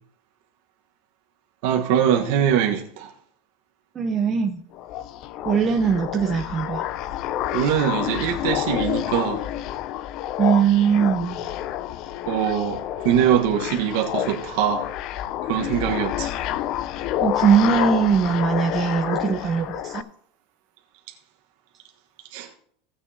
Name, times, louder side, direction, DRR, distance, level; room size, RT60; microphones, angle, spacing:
voice 1, 1.6-3.1 7.5-9.5 12.3-14.9 15.4-16.3 22.3-22.5, right 9 dB, 70° right, 1.3 m, -22 dB
voice 2, 3.9-4.6 5.4-6.8 10.4-11.4 17.2-20.1, right 7 dB, 25° right, 0.8 m, -21 dB
sound 1, 4.7-20.0, left 12 dB, 50° left, 0.4 m, -29 dB
17.5 x 7.0 x 2.9 m
supercardioid pair, 145°, 0 cm